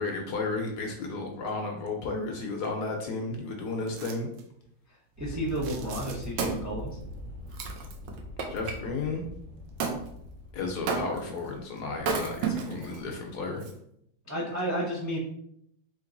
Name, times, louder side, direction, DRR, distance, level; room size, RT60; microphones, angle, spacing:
voice 1, 0.0-4.3 8.5-9.3 10.5-13.6, left 3 dB, 65° left, 2 dB, 1.1 m, -33 dB
sound 1, 3.9-4.5 5.5-6.5 9.1-9.2 9.7-10.4 10.7-11.8 12.3-12.4, right 7 dB, 70° right, 0.9 m, -48 dB
voice 2, 5.2-7.0 14.3-15.2, equal, 25° right, -4 dB, 0.4 m, -31 dB
sound 2, 5.2-11.6, left 2 dB, 50° right, 1.9 m, -43 dB
Wood, 5.9-8.8 9.8-10.0 10.9-11.4 12.0-13.0 13.6-13.7, right 5 dB, 90° right, 1.5 m, -32 dB
3.8 x 3.2 x 3.8 m, 0.73 s
omnidirectional pair, 2.1 m